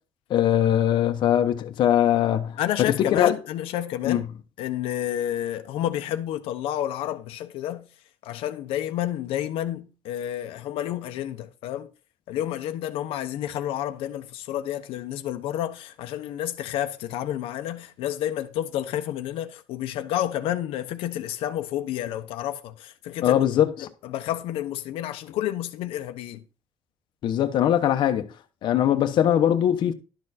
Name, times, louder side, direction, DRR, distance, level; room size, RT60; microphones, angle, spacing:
voice 1, 0.3-3.3 4.1-4.3 23.2-23.9 27.2-28.3 28.6-29.9, left 10 dB, 55° left, 0.9 m, -21 dB
voice 2, 2.6-4.3 4.6-7.9 8.2-11.9 12.3-23.5 24.0-26.4, left 12 dB, 85° left, 0.9 m, -30 dB
11.5 x 6.6 x 4.2 m
cardioid pair, 155°, 9 cm